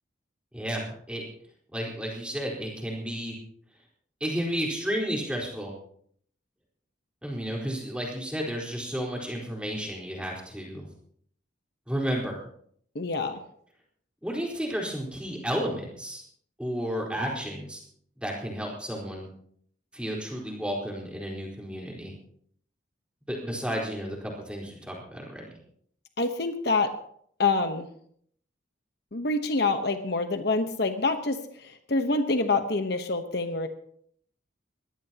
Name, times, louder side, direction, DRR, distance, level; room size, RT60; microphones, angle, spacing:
voice 1, 0.5-1.2 1.7-3.4 4.2-5.7 7.2-10.9 11.9-12.4 14.2-16.2 16.6-17.8 18.2-19.3 19.9-22.1 23.3-25.4, equal, 5° right, -2 dB, 4.3 m, -32 dB
voice 2, 12.9-13.4 26.2-26.9 27.4-27.9 29.1-33.7, left 3 dB, 55° left, 7 dB, 1.1 m, -26 dB
22.0 x 17.0 x 2.9 m, 0.64 s
head